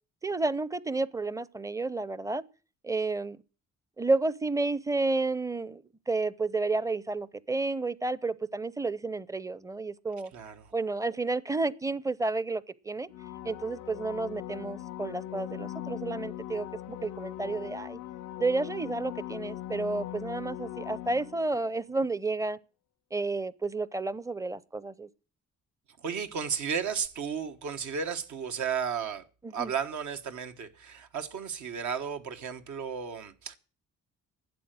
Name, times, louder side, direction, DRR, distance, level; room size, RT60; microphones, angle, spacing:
voice 1, 0.2-2.4 2.8-3.4 4.0-10.3 10.7-13.1 13.4-18.0 18.4-22.6 23.1-25.1 29.4-29.7, right 3 dB, 10° right, 0.6 m, -31 dB
voice 2, 10.3-10.7 26.0-29.2 29.5-33.6, right 7 dB, 70° right, 1.4 m, -34 dB
sound 1, 13.1-21.7 27.1-27.2, left 14 dB, 80° left, 0.6 m, -40 dB
11.5 x 8.1 x 7.6 m
cardioid pair, 90°, 30 cm